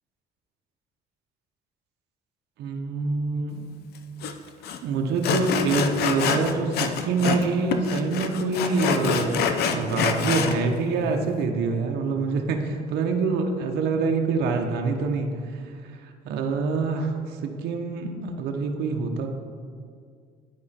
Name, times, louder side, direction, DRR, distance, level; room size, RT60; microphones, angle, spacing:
voice 1, 2.6-3.6 4.8-12.6 12.9-15.3 16.0-19.3, right 4 dB, 75° right, 3 dB, 0.8 m, -26 dB
Sawing, 4.2-4.3 4.6-4.8 5.2-7.5 7.7-10.6, left 6 dB, 70° left, 0.6 m, -26 dB
9.3 x 4.8 x 4.2 m, 2.1 s
cardioid pair, 110°, 17 cm